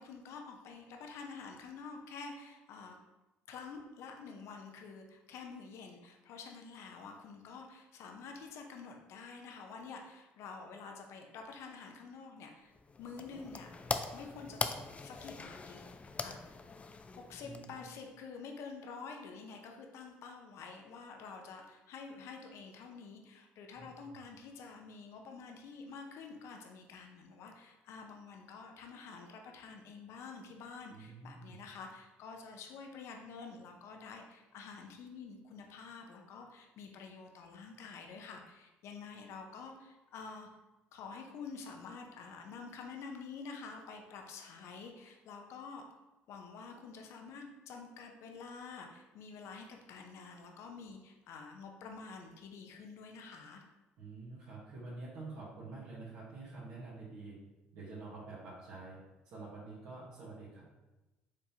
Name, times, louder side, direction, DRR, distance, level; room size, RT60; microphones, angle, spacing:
voice 1, 0.0-3.0 3.5-12.7 13.0-13.7 14.1-15.9 16.2-16.6 17.1-40.5 40.9-45.9 46.3-53.6, left 5 dB, 70° left, 3 dB, 0.7 m, -48 dB
sound 1, 12.7-18.1, left 4 dB, 25° left, 0.4 m, -41 dB
voice 2, 17.4-17.8 23.7-24.1 30.9-31.6 54.0-57.3 57.7-59.0 59.2-60.6, right 3 dB, 75° right, -8 dB, 1.3 m, -47 dB
5.0 x 3.5 x 2.8 m, 1.1 s
supercardioid pair, 70°, 5 cm